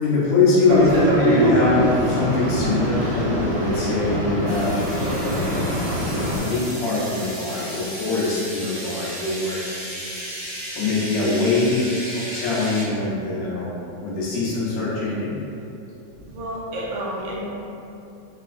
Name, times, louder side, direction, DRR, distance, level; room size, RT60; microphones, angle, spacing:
voice 1, 0.0-5.7 6.1-9.6 10.8-11.8 12.1-13.8 14.0-15.4, left 3 dB, 75° left, -7 dB, 2.0 m, -23 dB
Boat Water vehicle, 0.7-6.4, equal, 60° right, 2.0 m, -23 dB
sound 1, 4.4-12.8, equal, 45° right, 1.1 m, -34 dB
voice 2, 16.3-17.4, equal, 80° right, -5 dB, 2.2 m, -30 dB
5.7 x 2.8 x 2.5 m, 2.8 s
omnidirectional pair, 3.3 m